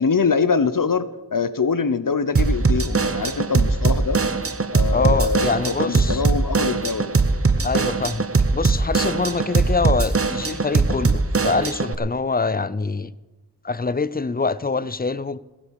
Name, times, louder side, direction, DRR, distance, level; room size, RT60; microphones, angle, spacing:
voice 1, 0.0-4.2 4.7-7.1, left 5 dB, 55° left, 0.9 m, -23 dB
Drum kit / Drum, 2.4-12.0, right 4 dB, 35° right, 0.9 m, -21 dB
voice 2, 4.9-6.2 7.6-13.1 13.6-15.4, left 4 dB, 25° left, 0.5 m, -25 dB
15.5 x 9.9 x 6.5 m
wide cardioid pair, 45°, 39 cm